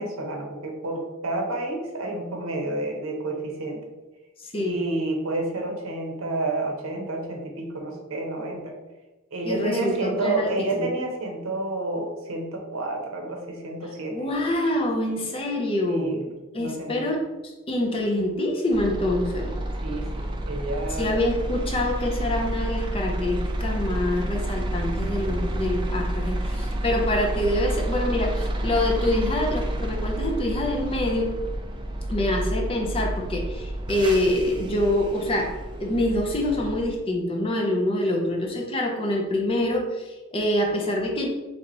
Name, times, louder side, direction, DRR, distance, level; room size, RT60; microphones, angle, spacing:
voice 1, 0.0-3.8 4.5-8.7 9.3-14.2 15.9-16.3 16.6-17.1 19.8-21.2, right 2 dB, 70° right, 1 dB, 0.8 m, -30 dB
voice 2, 9.4-10.9 14.1-16.2 16.5-19.6 21.0-31.4 32.1-41.3, left 1 dB, 25° left, 0 dB, 0.6 m, -26 dB
sound 1, 18.7-36.9, right 1 dB, 20° right, 0.4 m, -29 dB
3.3 x 2.9 x 3.9 m, 1.1 s
head